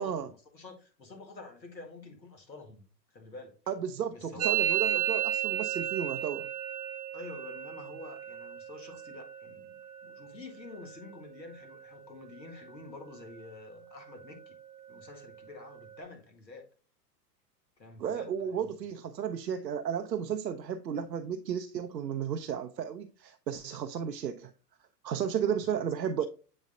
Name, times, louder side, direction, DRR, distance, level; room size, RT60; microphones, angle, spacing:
voice 1, 0.0-2.8 3.1-3.6 4.1-4.8 7.1-14.6 14.9-16.7 17.8-18.8 25.5-25.8 26.2-26.3, left 3 dB, 90° left, 2.0 m, -48 dB
voice 2, 3.7-6.5 18.0-24.5 25.0-26.2, right 8 dB, 80° right, 0.8 m, -33 dB
Musical instrument, 4.4-12.1 12.3-12.9 13.1-13.7 14.0-16.0, right 13 dB, 25° right, 0.4 m, -35 dB
9.8 x 4.0 x 2.6 m
figure-of-eight pair, 100°, 50 cm